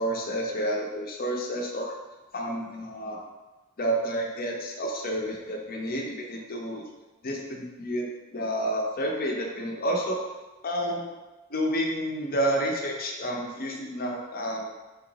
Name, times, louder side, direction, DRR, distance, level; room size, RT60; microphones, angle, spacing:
voice 1, 0.0-1.9 2.3-3.2 3.8-6.9 7.2-10.2 10.6-11.1 11.5-14.7, equal, 45° left, 0 dB, 0.7 m, -30 dB
4.3 x 2.9 x 3.9 m, 1.1 s
head